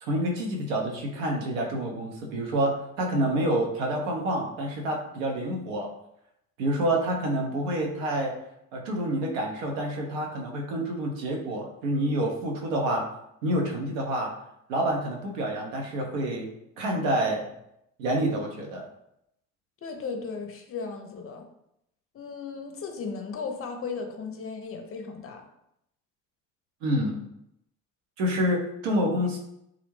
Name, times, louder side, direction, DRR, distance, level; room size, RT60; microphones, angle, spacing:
voice 1, 0.0-5.9 6.6-8.3 8.7-13.1 13.4-14.3 14.7-16.5 16.8-17.4 18.0-18.8 26.8-27.2 28.2-29.4, right 1 dB, 80° right, 0 dB, 0.7 m, -28 dB
voice 2, 19.8-21.4 22.1-25.4, left 5 dB, 35° left, 5 dB, 0.5 m, -36 dB
2.4 x 2.0 x 3.0 m, 0.79 s
hypercardioid pair, 55°, 38 cm